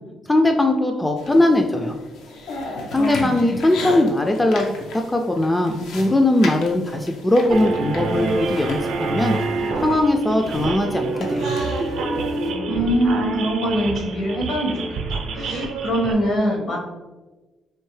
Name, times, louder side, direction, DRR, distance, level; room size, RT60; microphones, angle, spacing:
voice 1, 0.3-2.0 2.9-4.7 5.1-9.4 9.8-11.5, left 1 dB, 15° left, 4 dB, 0.3 m, -19 dB
sound 1, 1.2-12.5, left 2 dB, 85° left, 0.6 m, -36 dB
voice 2, 2.9-3.6 12.7-14.8 15.1-16.8, equal, 65° left, 0 dB, 1.2 m, -23 dB
sound 2, 7.5-16.1, right 3 dB, 85° right, 0.6 m, -26 dB
4.4 x 2.7 x 3.1 m, 1.2 s
cardioid pair, 90°, 0 cm